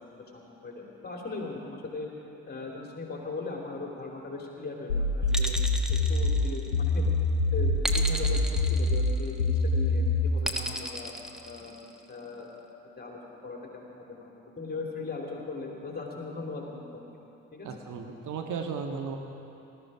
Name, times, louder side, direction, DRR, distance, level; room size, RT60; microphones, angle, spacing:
voice 1, 0.0-2.1 2.5-5.6 6.1-7.1 7.5-8.4 8.7-11.1 11.4-12.5 13.0-17.1 17.5-17.7, left 3 dB, 25° left, -1 dB, 3.0 m, -39 dB
sound 1, 4.9-10.4, left 2 dB, 80° left, 1.1 m, -25 dB
sound 2, 5.3-7.0 7.8-9.5 10.4-12.0, equal, ahead, 1.2 m, -34 dB
voice 2, 17.6-19.2, right 5 dB, 50° right, 3 dB, 1.6 m, -35 dB
19.5 x 13.0 x 4.9 m, 2.9 s
figure-of-eight pair, 45°, 38 cm